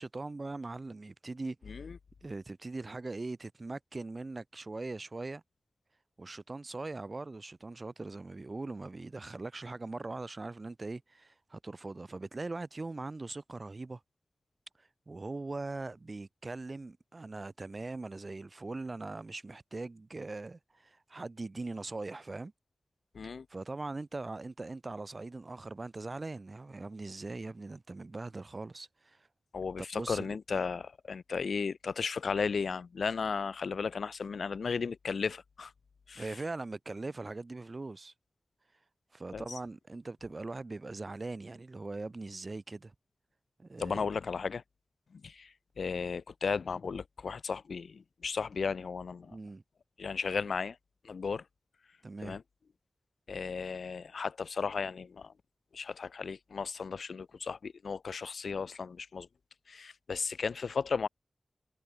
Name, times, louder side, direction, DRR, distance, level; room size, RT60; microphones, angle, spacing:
voice 1, 0.0-1.7 2.2-5.4 6.2-14.0 14.8-22.5 23.5-29.3 29.9-30.4 36.2-38.1 39.1-42.9 43.6-44.1 49.2-49.6 52.0-52.4, right 3 dB, 40° right, 2.7 m, -41 dB
voice 2, 29.5-35.7 36.1-36.3 39.3-39.4 43.8-44.6 45.1-49.3 50.0-50.8 51.0-51.4 52.2-52.4 53.3-55.3 55.7-59.3 59.7-61.1, left 5 dB, 85° left, 3.2 m, -35 dB
wide cardioid pair, 95°, 0 cm